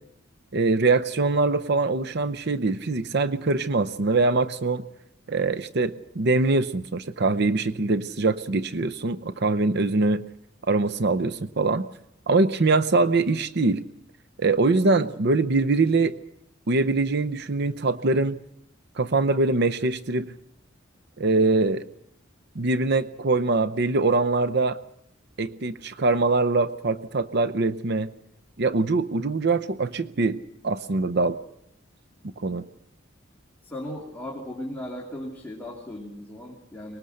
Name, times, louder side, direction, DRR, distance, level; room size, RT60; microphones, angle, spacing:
voice 1, 0.5-4.8 5.3-10.2 10.7-11.9 12.3-13.8 14.4-16.2 16.7-18.4 19.0-20.3 21.2-21.8 22.6-24.8 25.4-28.1 28.6-31.4 32.2-32.6, right 3 dB, 60° right, 11 dB, 0.7 m, -23 dB
voice 2, 33.6-37.0, left 1 dB, 10° left, -2 dB, 2.9 m, -37 dB
23.5 x 20.5 x 6.5 m, 0.79 s
head